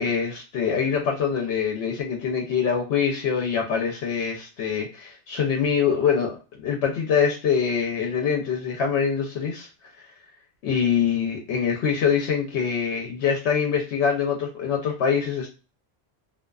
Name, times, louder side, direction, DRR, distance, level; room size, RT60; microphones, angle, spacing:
voice 1, 0.0-9.7 10.6-15.5, left 7 dB, 90° left, 1 dB, 0.9 m, -24 dB
2.4 x 2.3 x 2.2 m, 0.33 s
omnidirectional pair, 1.1 m